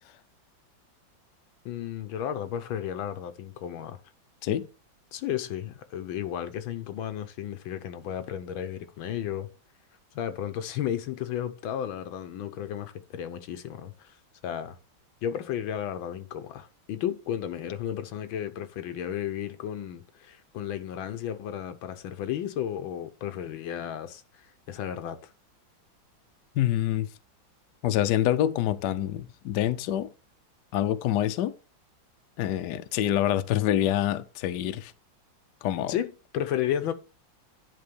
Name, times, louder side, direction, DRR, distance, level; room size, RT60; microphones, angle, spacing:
voice 1, 1.6-4.0 5.1-9.5 10.2-14.1 14.4-14.8 15.2-24.2 24.7-25.2 35.9-36.9, left 10 dB, 90° left, 1.7 m, -33 dB
voice 2, 26.6-27.1 27.8-30.1 30.7-31.5 32.4-34.9 35.6-35.9, left 12 dB, 70° left, 1.2 m, -26 dB
10.5 x 3.7 x 6.8 m
omnidirectional pair, 2.1 m